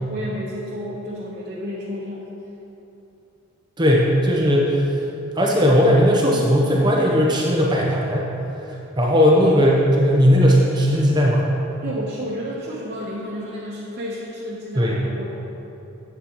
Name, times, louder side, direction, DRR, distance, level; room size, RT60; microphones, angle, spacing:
voice 1, 0.0-2.3 11.8-15.4, equal, 45° right, -7 dB, 1.1 m, -31 dB
voice 2, 3.8-5.0 5.3-8.3 9.0-11.5 14.7-15.0, equal, 20° right, -3 dB, 0.9 m, -17 dB
11.0 x 8.2 x 3.1 m, 3.0 s
head